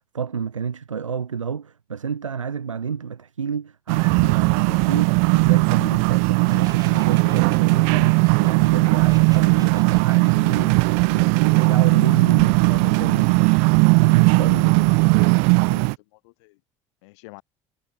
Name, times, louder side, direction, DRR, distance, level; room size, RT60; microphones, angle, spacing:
voice 1, 0.0-15.3, right 6 dB, 80° right, 1.2 m, -30 dB
sound 1, 3.9-15.9, right 40 dB or more, 60° right, 0.7 m, -18 dB
Laughter, 6.5-12.2, right 4 dB, 25° right, 3.3 m, -44 dB
sound 2, 8.5-13.7, equal, 5° left, 7.8 m, -51 dB
voice 2, 14.0-15.4 15.7-16.6 17.0-17.4, left 25 dB, 65° left, 2.2 m, -46 dB
figure-of-eight pair, 60°, 16 cm